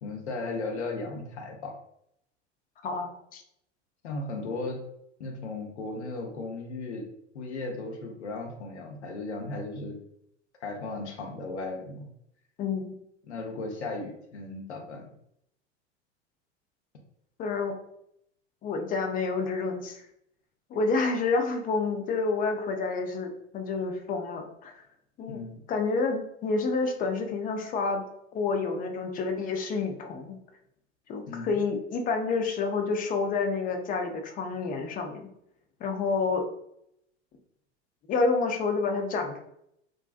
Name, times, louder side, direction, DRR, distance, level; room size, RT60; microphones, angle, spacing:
voice 1, 0.0-1.7 4.0-4.8 5.2-7.1 7.3-10.0 10.6-12.1 13.3-15.0 25.3-25.6 31.3-31.5, left 3 dB, 70° left, 2 dB, 0.7 m, -36 dB
voice 2, 2.8-3.4 12.6-12.9 17.4-17.8 18.6-20.0 20.7-24.7 25.2-25.4 25.7-28.1 28.3-30.4 31.1-35.3 35.8-36.4 38.1-39.4, left 4 dB, 25° left, 4 dB, 0.4 m, -29 dB
2.5 x 2.2 x 2.4 m, 0.75 s
figure-of-eight pair, 80°, 35 cm